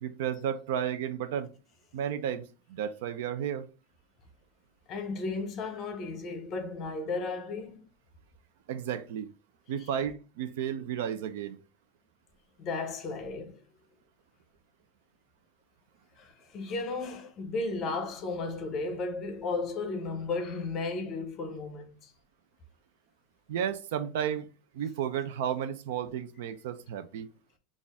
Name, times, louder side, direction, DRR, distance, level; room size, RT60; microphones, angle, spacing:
voice 1, 0.0-1.5 1.9-3.6 8.7-9.3 9.7-11.6 23.5-24.5 24.7-27.3, right 9 dB, 65° right, 0.5 m, -33 dB
voice 2, 4.9-7.8 9.8-9.9 12.6-13.6 16.2-22.1, left 3 dB, 25° left, 0.7 m, -34 dB
4.1 x 2.4 x 3.5 m
supercardioid pair, 175°, 0 cm